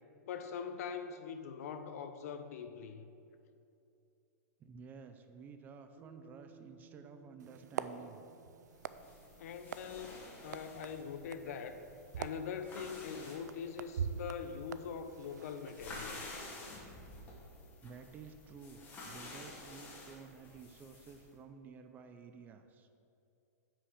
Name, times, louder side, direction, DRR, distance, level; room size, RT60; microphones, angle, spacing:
voice 1, 0.2-3.1 9.4-11.8 12.2-16.5, left 6 dB, 60° left, 9 dB, 0.7 m, -43 dB
voice 2, 4.6-8.2 17.8-22.9, right 5 dB, 20° right, 8 dB, 0.4 m, -52 dB
Bass guitar, 6.0-10.4, right 5 dB, 50° right, 1.0 m, -62 dB
sound 1, 7.4-16.0, right 7 dB, 90° right, 0.4 m, -45 dB
sound 2, 8.7-21.3, left 2 dB, 20° left, 1.6 m, -51 dB
9.6 x 6.1 x 5.0 m, 2.7 s
hypercardioid pair, 150°, 9 cm